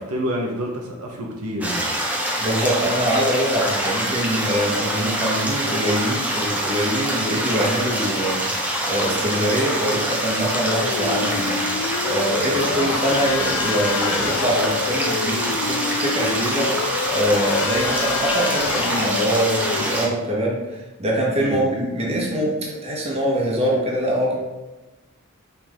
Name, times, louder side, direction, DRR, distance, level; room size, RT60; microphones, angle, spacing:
voice 1, 0.1-1.9 12.7-12.8 21.4-21.7, equal, 75° right, -1 dB, 1.1 m, -28 dB
sound 1, 1.6-20.1, right 1 dB, 5° right, 1.0 m, -25 dB
voice 2, 2.4-24.3, equal, 30° right, -3 dB, 1.4 m, -24 dB
sound 2, 10.7-19.8, left 7 dB, 75° left, 0.3 m, -28 dB
5.6 x 4.6 x 3.7 m, 1.1 s
head